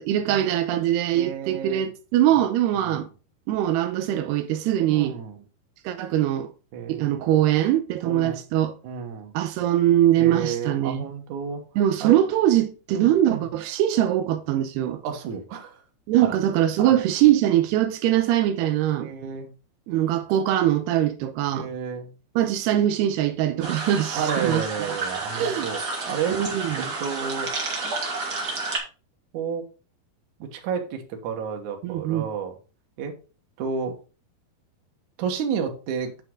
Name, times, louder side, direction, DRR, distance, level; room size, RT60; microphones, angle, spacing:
voice 1, 0.0-3.1 3.5-5.2 5.8-6.5 6.9-8.8 9.3-11.1 11.8-15.0 16.1-19.1 19.9-21.7 22.4-25.0 25.3-25.7 26.3-26.9 31.8-32.3, right 12 dB, 90° right, 2.8 m, -22 dB
voice 2, 1.1-1.9 2.3-2.4 2.7-3.0 4.9-5.4 6.7-7.2 8.0-8.4 8.8-9.3 10.2-11.6 12.0-12.2 12.9-13.5 15.0-15.8 16.2-16.4 16.8-16.9 19.0-19.5 21.5-22.1 24.1-26.4 26.7-27.5 29.3-29.7 30.4-32.6 33.0-33.1 33.6-34.0 35.2-36.1, right 7 dB, 60° right, 2.2 m, -31 dB
sound 1, 23.6-28.8, right 3 dB, 45° right, 1.4 m, -30 dB
9.1 x 5.5 x 3.8 m
omnidirectional pair, 4.7 m